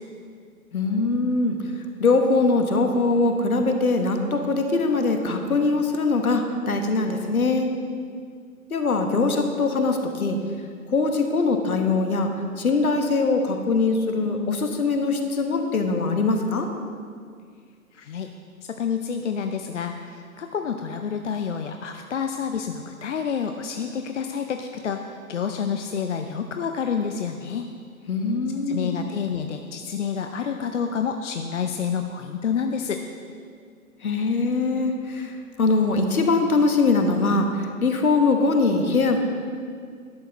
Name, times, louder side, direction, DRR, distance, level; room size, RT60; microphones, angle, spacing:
voice 1, 0.7-1.7 2.0-7.7 8.7-10.4 10.9-12.3 12.6-16.7 28.1-29.0 34.0-39.2, left 3 dB, 70° left, 5 dB, 1.3 m, -22 dB
voice 2, 17.9-18.3 18.7-27.7 28.7-33.0, left 7 dB, 55° left, 5 dB, 0.6 m, -28 dB
11.5 x 7.9 x 4.0 m, 2.1 s
figure-of-eight pair, 135°, 44 cm